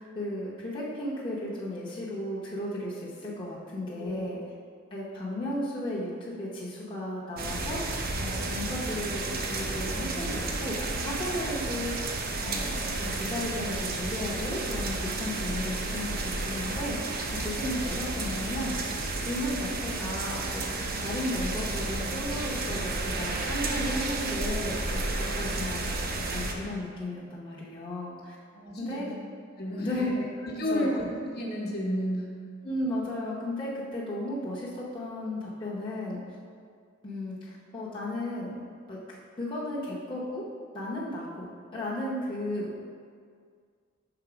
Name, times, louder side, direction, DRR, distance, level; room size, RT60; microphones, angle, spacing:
voice 1, 0.0-4.4 4.9-12.1 12.4-19.0 19.3-26.0 26.3-28.4 28.8-29.0 29.8-30.3 30.7-31.0 32.6-36.2 37.0-38.6 38.9-40.4 40.7-42.8, left 1 dB, 25° left, -7 dB, 0.8 m, -34 dB
sound 1, 7.4-26.5, right 2 dB, 50° right, 0.6 m, -32 dB
voice 2, 28.5-29.1 29.6-30.1 30.4-32.3, equal, 50° left, -3 dB, 1.1 m, -31 dB
5.9 x 3.9 x 5.0 m, 2.1 s
head